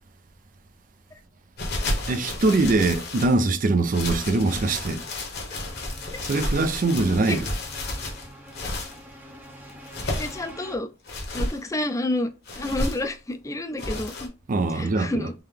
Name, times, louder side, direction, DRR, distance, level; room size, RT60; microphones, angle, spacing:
sound 1, 1.6-3.4 3.9-9.0 9.7-10.5 11.0-11.6 12.4-13.1 13.8-14.3, left 1 dB, 60° left, 1.1 m, -31 dB
voice 1, 2.1-5.0 6.2-7.5 14.5-15.3, right 3 dB, 45° right, 0.4 m, -22 dB
sound 2, 5.6-10.8, equal, 10° right, 0.8 m, -46 dB
voice 2, 10.0-10.9 11.3-12.3 12.6-14.3 14.7-15.3, left 1 dB, 15° left, 0.4 m, -29 dB
3.7 x 2.8 x 3.3 m
head